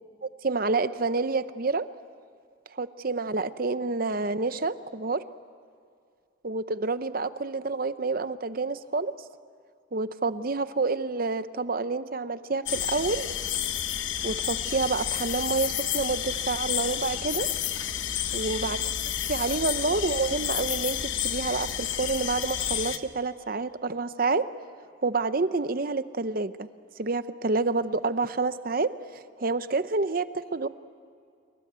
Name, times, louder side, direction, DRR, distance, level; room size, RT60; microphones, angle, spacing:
voice 1, 0.2-1.9 2.7-5.2 6.4-9.1 9.9-13.3 14.2-17.5 18.3-18.9 19.3-21.0 21.2-24.5 25.0-26.7 27.0-30.7, right 3 dB, 50° right, 13 dB, 0.8 m, -28 dB
sound 1, 12.7-23.0, left 10 dB, 75° left, 1.1 m, -30 dB
28.0 x 22.5 x 8.2 m, 2.3 s
head